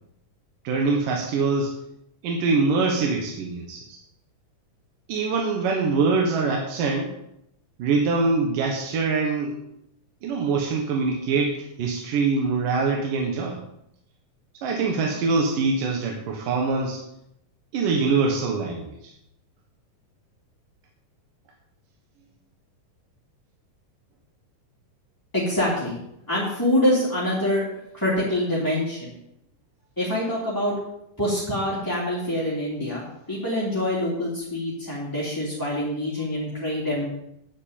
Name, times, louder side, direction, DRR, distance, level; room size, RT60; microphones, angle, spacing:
voice 1, 0.6-1.7 2.2-4.0 5.1-7.1 7.8-9.6 10.2-13.6 14.6-17.0 17.7-19.1, right 4 dB, 80° right, 1 dB, 3.1 m, -24 dB
voice 2, 25.3-25.9 26.3-27.6 27.9-29.2 30.0-30.7 31.2-37.1, left 1 dB, 5° left, -7 dB, 2.6 m, -25 dB
9.8 x 8.3 x 9.0 m, 0.79 s
omnidirectional pair, 3.8 m